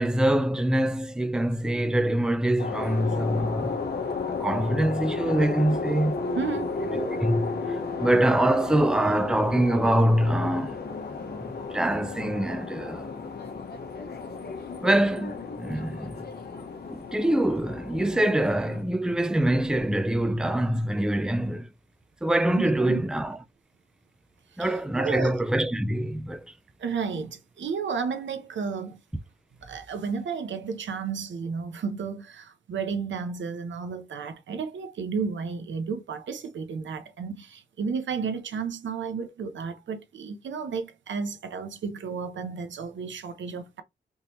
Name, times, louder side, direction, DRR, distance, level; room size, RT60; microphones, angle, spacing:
voice 1, 0.0-3.8 4.4-6.2 6.9-10.8 11.7-13.1 14.8-16.2 16.9-21.7 22.2-23.4 24.6-26.4, right 1 dB, 5° right, 0.4 m, -24 dB
sound 1, 2.6-18.8, left 4 dB, 55° left, 0.9 m, -33 dB
voice 2, 6.4-6.7 22.6-23.0 24.6-25.3 26.8-29.0 29.6-43.8, right 5 dB, 90° right, 0.6 m, -32 dB
3.6 x 2.9 x 2.7 m
wide cardioid pair, 95°, 19 cm